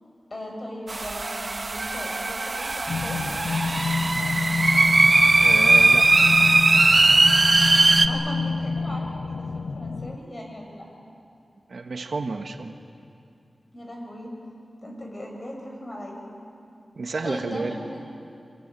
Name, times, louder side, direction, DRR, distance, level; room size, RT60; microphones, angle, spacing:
voice 1, 0.3-3.2 8.1-10.9 13.7-14.3 14.8-16.2 17.2-18.0, left 1 dB, 35° left, 0 dB, 6.3 m, -38 dB
sound 1, 0.9-8.1, right 2 dB, 40° right, 1.0 m, -19 dB
sound 2, 2.9-10.2, left 4 dB, 80° left, 0.6 m, -28 dB
voice 2, 5.4-6.1 11.7-12.7 17.0-17.8, right 3 dB, 70° right, 6 dB, 1.4 m, -31 dB
24.5 x 21.5 x 9.0 m, 2.5 s
wide cardioid pair, 95°, 0 cm